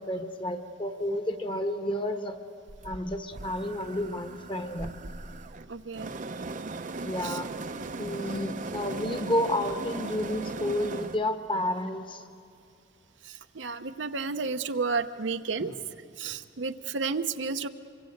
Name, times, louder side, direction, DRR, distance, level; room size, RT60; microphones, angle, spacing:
voice 1, 0.0-2.4 2.8-4.9 7.0-7.5 8.0-12.2, left 1 dB, 25° left, 6 dB, 1.3 m, -31 dB
sound 1, 2.7-11.2, right 3 dB, 45° right, 0.7 m, -38 dB
voice 2, 5.7-6.1 7.2-7.4 13.2-15.7 16.2-17.7, right 4 dB, 75° right, 8 dB, 0.8 m, -32 dB
25.0 x 24.5 x 7.9 m, 2.4 s
head